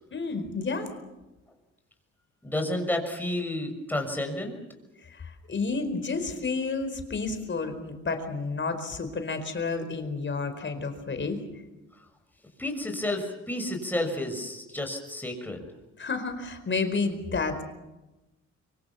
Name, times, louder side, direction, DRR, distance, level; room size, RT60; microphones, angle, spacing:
voice 1, 0.1-0.9 5.0-11.4 16.0-17.6, left 4 dB, 40° left, 8 dB, 4.7 m, -31 dB
voice 2, 2.4-4.5 12.6-15.7, left 1 dB, 5° left, 4 dB, 6.3 m, -31 dB
24.0 x 24.0 x 7.1 m, 1.0 s
cardioid pair, 90°, 30 cm